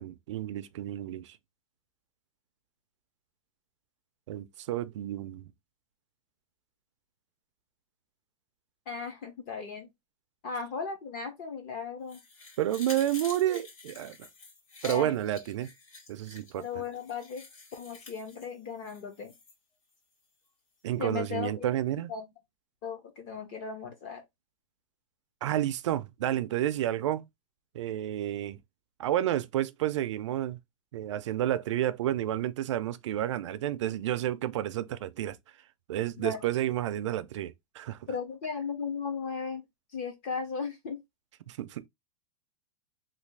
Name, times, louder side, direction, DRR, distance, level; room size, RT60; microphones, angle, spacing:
voice 1, 0.0-1.4 4.3-5.5 12.6-14.2 14.8-15.7 16.1-16.6 20.8-22.1 25.4-27.3 27.7-28.6 29.0-30.6 30.9-35.4 35.9-38.0 41.5-41.9, right 12 dB, 55° right, 0.4 m, -30 dB
voice 2, 8.9-9.9 10.4-12.2 14.8-15.1 16.6-17.4 17.7-19.3 21.0-21.7 22.1-22.3 22.8-24.2 36.2-36.4 38.1-39.6 39.9-41.0, left 5 dB, 25° left, 0.5 m, -36 dB
sound 1, 12.1-19.5 19.9-20.0, left 3 dB, 75° left, 2.1 m, -48 dB
3.3 x 2.3 x 3.2 m
supercardioid pair, 180°, 18 cm